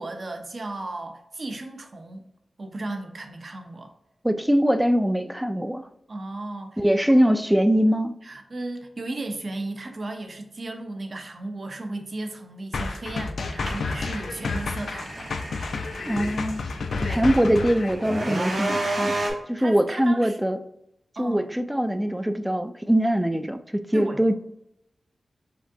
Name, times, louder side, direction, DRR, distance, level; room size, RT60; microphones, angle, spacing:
voice 1, 0.0-2.3 2.6-3.9 6.1-7.2 8.2-15.3 17.0-17.3 19.6-20.4 21.2-21.5 23.9-24.3, right 2 dB, 50° right, 5 dB, 0.7 m, -35 dB
voice 2, 4.2-5.9 6.8-8.1 16.1-16.6 17.1-19.2 19.5-20.6 21.2-24.3, equal, 5° right, 10 dB, 0.3 m, -22 dB
sound 1, 12.7-17.9, left 4 dB, 90° left, 0.4 m, -30 dB
sound 2, 13.6-19.3, right 1 dB, 65° right, 1.3 m, -32 dB
5.1 x 3.5 x 2.7 m, 0.80 s
wide cardioid pair, 115°, 0 cm